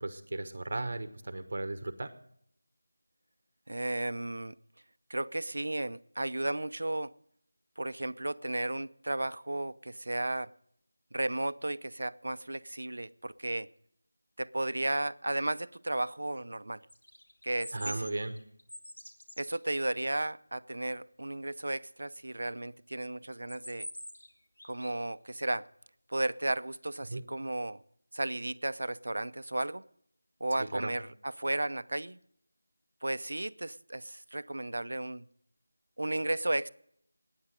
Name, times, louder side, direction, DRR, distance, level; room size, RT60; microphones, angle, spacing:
voice 1, 0.0-2.1 17.7-18.4 27.1-27.2 30.6-31.0, right 2 dB, 40° right, 11 dB, 1.1 m, -36 dB
voice 2, 3.7-4.5 5.1-7.1 7.8-10.5 11.1-13.7 14.4-16.8 17.4-18.0 19.4-23.9 24.6-25.7 26.1-27.8 28.1-29.8 30.4-32.2 33.0-35.3 36.0-36.7, right 1 dB, 65° right, 15 dB, 0.6 m, -34 dB
sound 1, 16.9-19.6 23.3-24.3 24.6-25.0, left 1 dB, 80° left, 3.2 m, -45 dB
19.5 x 9.7 x 5.1 m, 0.69 s
figure-of-eight pair, 175°, 0 cm